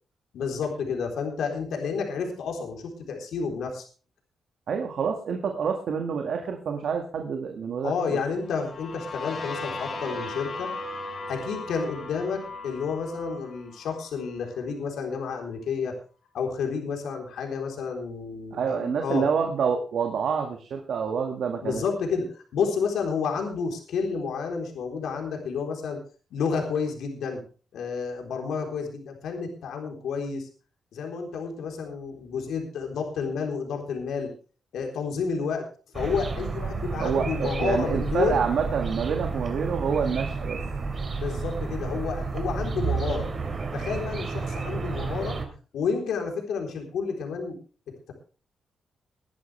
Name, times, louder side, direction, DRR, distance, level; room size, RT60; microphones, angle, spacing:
voice 1, 0.3-3.8 7.8-10.7 11.3-16.0 16.3-19.2 21.6-26.0 26.3-27.4 27.7-30.5 30.9-34.3 34.7-35.6 35.9-38.4 41.2-43.3 43.7-45.4 45.7-47.6, left 5 dB, 85° left, 2 dB, 3.8 m, -30 dB
voice 2, 4.7-8.2 18.5-21.8 37.0-40.6, right 6 dB, 65° right, 3 dB, 1.9 m, -27 dB
sound 1, 8.4-14.3, left 2 dB, 50° left, 4.3 m, -37 dB
sound 2, 35.9-45.5, right 4 dB, 40° right, 3.2 m, -31 dB
21.0 x 11.5 x 3.4 m, 0.37 s
cardioid pair, 115°, 0 cm